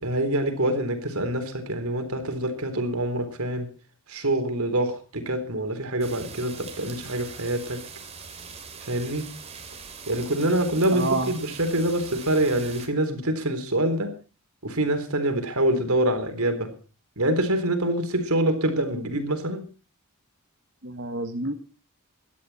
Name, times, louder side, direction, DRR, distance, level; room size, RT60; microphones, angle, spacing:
voice 1, 0.0-3.7 4.1-7.8 8.8-9.3 10.1-14.1 14.6-16.7 17.2-19.6, right 1 dB, 80° right, 3.9 m, -25 dB
sound 1, 6.0-12.9, right 5 dB, 30° right, 3.0 m, -42 dB
voice 2, 10.9-11.3 20.8-21.5, right 2 dB, 55° right, 1.6 m, -28 dB
18.0 x 12.5 x 4.3 m
head